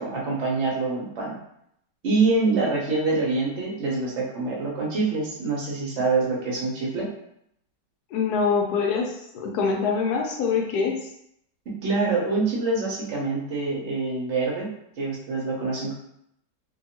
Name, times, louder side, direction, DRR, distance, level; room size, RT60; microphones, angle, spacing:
voice 1, 0.0-1.4 2.0-7.1 11.7-14.7 15.0-15.9, right 3 dB, 50° right, -4 dB, 0.9 m, -25 dB
voice 2, 8.1-11.1, left 5 dB, 70° left, 1 dB, 1.0 m, -24 dB
2.8 x 2.6 x 2.8 m, 0.74 s
omnidirectional pair, 1.9 m